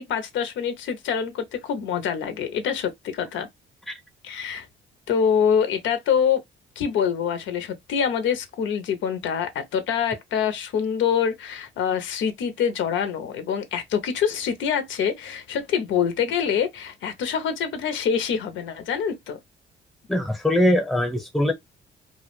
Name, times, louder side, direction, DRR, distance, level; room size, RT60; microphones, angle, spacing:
voice 1, 0.0-3.5 4.2-4.7 5.1-6.4 6.8-19.4, left 7 dB, 75° left, 0.5 m, -25 dB
voice 2, 20.1-21.5, left 1 dB, ahead, 0.7 m, -21 dB
2.2 x 2.0 x 2.9 m
cardioid pair, 90°, 20 cm